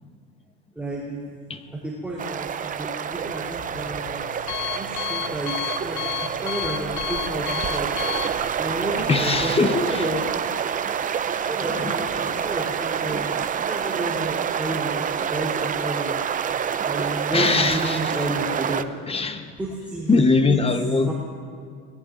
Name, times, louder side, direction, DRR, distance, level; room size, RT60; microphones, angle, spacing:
voice 1, 0.8-1.2 1.8-4.2 4.7-7.9 8.6-10.3 11.5-13.3 13.7-16.2 16.8-18.8 19.6-20.6 21.1-21.2, right 1 dB, 5° right, 3.5 m, -31 dB
sound 1, 2.2-18.8, right 8 dB, 25° right, 0.6 m, -27 dB
Alarm, 3.1-9.5, left 10 dB, 55° left, 0.9 m, -33 dB
voice 2, 9.0-10.1 11.7-11.9 13.1-13.2 17.3-18.2 19.1-19.5 20.1-21.1, left 4 dB, 15° left, 1.0 m, -22 dB
24.5 x 19.5 x 2.6 m
supercardioid pair, 110°, 33 cm